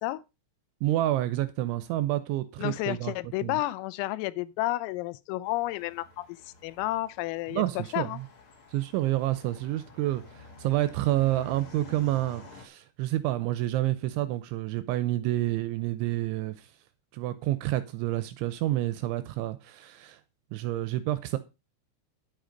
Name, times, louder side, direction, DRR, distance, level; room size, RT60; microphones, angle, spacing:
voice 1, 0.8-3.6 7.5-8.2 8.7-16.7 17.1-20.2 20.5-21.4, right 15 dB, 80° right, 2.8 m, -29 dB
voice 2, 2.6-8.2, left 17 dB, 85° left, 3.4 m, -31 dB
sound 1, 5.4-12.6, left 2 dB, 45° left, 1.9 m, -50 dB
11.0 x 7.9 x 5.1 m
omnidirectional pair, 5.9 m